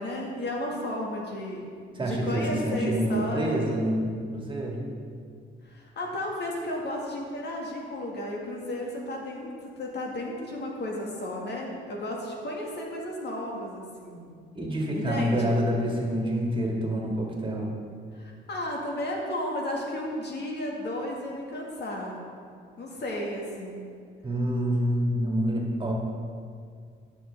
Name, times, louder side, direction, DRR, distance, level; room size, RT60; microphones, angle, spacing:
voice 1, 0.0-1.7 2.0-3.6 5.6-14.3 14.9-15.6 18.1-22.1 22.8-23.9, left 1 dB, 60° left, -2 dB, 2.0 m, -33 dB
voice 2, 2.0-4.9 14.5-17.7 24.2-25.9, equal, 25° right, -1 dB, 1.9 m, -27 dB
14.0 x 6.3 x 3.5 m, 2.1 s
cardioid pair, 90°, 20 cm